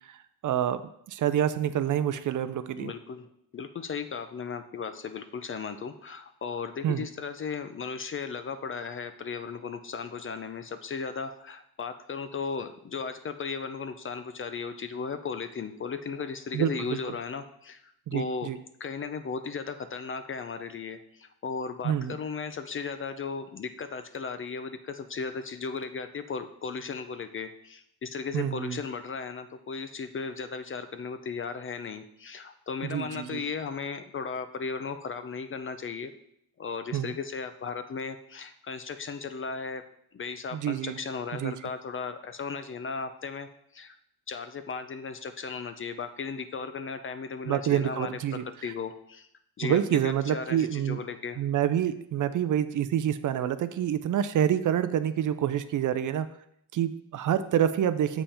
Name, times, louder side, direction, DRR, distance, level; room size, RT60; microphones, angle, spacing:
voice 1, 0.4-0.8 1.1-2.9 6.8-7.1 16.5-16.7 18.1-18.6 21.8-22.2 28.3-28.8 32.9-33.4 36.9-37.1 40.5-40.9 41.4-41.5 47.5-48.4 49.6-51.0 51.4-56.3 56.7-58.2, right 10 dB, 50° right, 12 dB, 0.5 m, -27 dB
voice 2, 2.8-18.5 18.8-36.1 36.6-39.8 40.1-44.0 44.3-49.3 49.6-51.4, left 5 dB, 30° left, 10 dB, 0.4 m, -36 dB
7.1 x 5.5 x 4.3 m, 0.73 s
cardioid pair, 125°, 41 cm